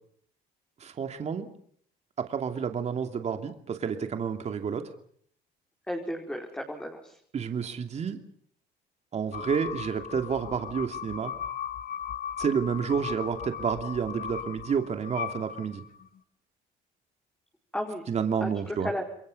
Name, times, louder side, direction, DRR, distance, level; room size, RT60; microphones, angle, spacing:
voice 1, 0.8-1.5 2.2-4.9 7.3-8.2 9.1-11.3 12.4-15.8 18.1-18.9, right 6 dB, 40° right, 6 dB, 2.8 m, -30 dB
voice 2, 5.9-7.2 17.7-18.1 18.4-19.0, equal, 5° left, 0 dB, 4.8 m, -34 dB
sound 1, 9.3-16.1, left 9 dB, 55° left, 2.1 m, -37 dB
29.0 x 22.5 x 5.5 m, 0.62 s
cardioid pair, 110°, 17 cm